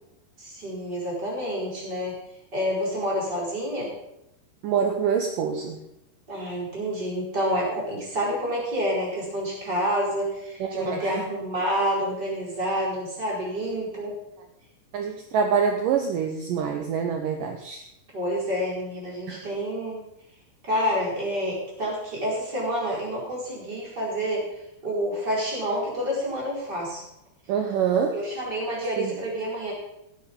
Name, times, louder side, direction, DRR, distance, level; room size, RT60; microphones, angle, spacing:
voice 1, 0.4-2.1 2.5-3.9 6.3-14.2 18.1-20.1 20.6-27.0 28.1-29.7, equal, 20° right, -6 dB, 5.1 m, -28 dB
voice 2, 4.6-5.8 10.6-11.3 14.9-17.8 19.3-19.4 27.5-28.2 29.0-29.2, right 7 dB, 75° right, 4 dB, 2.1 m, -25 dB
15.5 x 9.7 x 5.4 m, 0.83 s
omnidirectional pair, 5.0 m